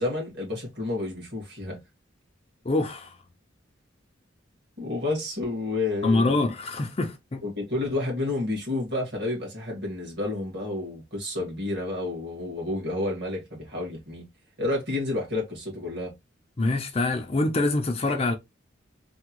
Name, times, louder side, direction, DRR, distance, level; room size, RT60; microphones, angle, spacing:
voice 1, 0.0-1.8 4.8-6.4 7.4-14.3 14.6-16.1, left 2 dB, 55° right, 1.8 m, -30 dB
voice 2, 2.6-3.2 6.0-7.4 16.6-18.3, left 2 dB, 30° left, 0.4 m, -25 dB
3.5 x 2.2 x 2.9 m
head